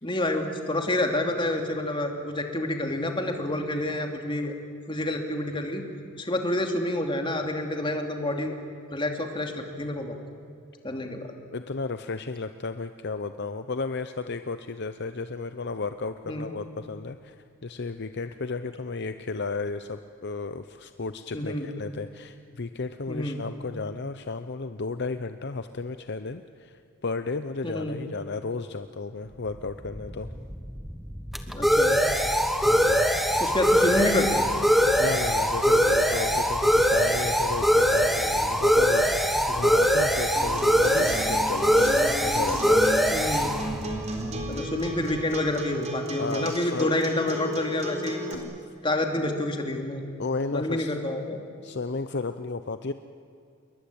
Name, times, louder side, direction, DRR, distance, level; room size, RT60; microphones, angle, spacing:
voice 1, 0.0-4.5 4.9-5.8 6.2-8.5 8.9-10.2 10.8-11.3 16.3-16.5 21.3-21.7 23.1-23.4 27.6-28.0 31.5-32.0 33.4-34.5 43.1-43.6 44.5-48.2 48.8-50.0 50.5-51.4, left 1 dB, 20° left, 3 dB, 2.7 m, -28 dB
voice 2, 11.5-30.3 32.6-33.4 34.7-43.0 43.8-44.2 46.2-47.0 48.3-48.5 50.2-50.9 51.6-52.9, left 3 dB, 50° left, 10 dB, 0.7 m, -33 dB
sound 1, 29.7-45.1, equal, ahead, 1.3 m, -23 dB
Acoustic guitar, 40.4-48.3, right 1 dB, 30° right, 4.1 m, -35 dB
28.5 x 22.0 x 8.7 m, 2.5 s
head